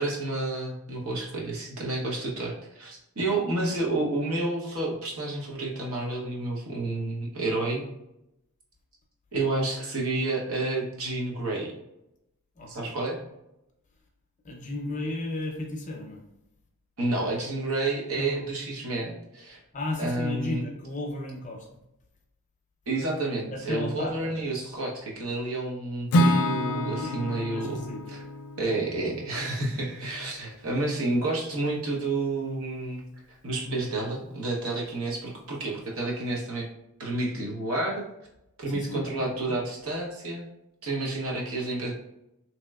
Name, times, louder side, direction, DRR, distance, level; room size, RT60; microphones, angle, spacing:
voice 1, 0.0-7.8 9.3-11.7 12.7-13.2 17.0-19.6 20.0-20.6 22.9-27.8 28.1-28.2 28.6-33.0 33.4-36.7 37.0-38.0 38.6-40.4 40.8-41.9, right 2 dB, 70° right, -2 dB, 0.9 m, -30 dB
voice 2, 12.6-13.0 14.4-16.2 18.1-18.4 19.7-21.7 23.5-24.3 27.0-28.1 38.6-39.6, left 2 dB, 35° left, 1 dB, 0.6 m, -34 dB
Acoustic guitar / Strum, 26.1-30.2, equal, 85° left, 0.4 m, -28 dB
3.0 x 2.9 x 2.3 m, 0.85 s
head